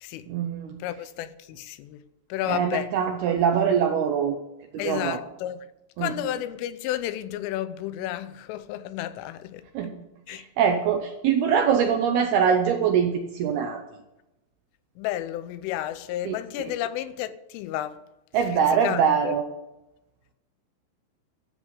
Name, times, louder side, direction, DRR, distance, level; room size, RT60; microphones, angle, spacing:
voice 1, 0.3-0.7 2.5-4.4 4.8-5.2 6.0-6.1 9.8-10.0 10.3-13.8 16.3-16.7 18.3-19.5, right 7 dB, 80° right, 2.3 m, -23 dB
voice 2, 0.8-2.0 2.3-2.9 4.8-5.6 6.0-9.6 10.3-10.4 15.0-18.0 18.5-19.3, left 13 dB, 85° left, 3.3 m, -32 dB
13.5 x 7.3 x 8.2 m
omnidirectional pair, 5.6 m